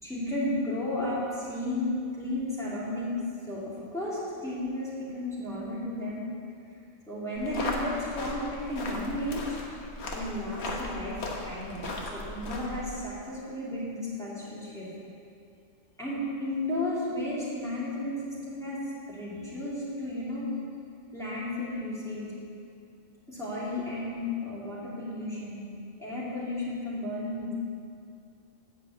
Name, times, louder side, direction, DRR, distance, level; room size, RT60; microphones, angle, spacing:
voice 1, 0.0-3.2 3.5-3.6 3.9-6.2 7.1-9.6 10.1-11.2 11.4-14.9 16.0-20.5 21.1-22.3 23.3-25.6 26.0-27.6, left 1 dB, ahead, -10 dB, 2.8 m, -33 dB
sound 1, 7.3-12.9, left 2 dB, 55° left, 1.3 m, -37 dB
8.2 x 5.8 x 8.0 m, 2.5 s
omnidirectional pair, 1.3 m